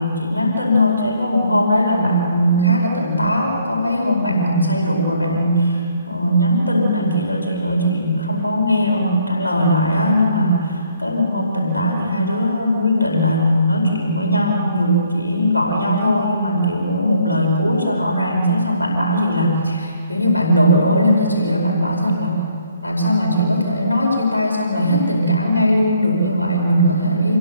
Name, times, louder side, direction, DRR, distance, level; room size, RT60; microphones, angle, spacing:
voice 1, 0.0-22.4 22.8-27.4, equal, 80° left, 0 dB, 4.9 m, -19 dB
27.0 x 21.0 x 6.8 m, 2.5 s
figure-of-eight pair, 135°, 0 cm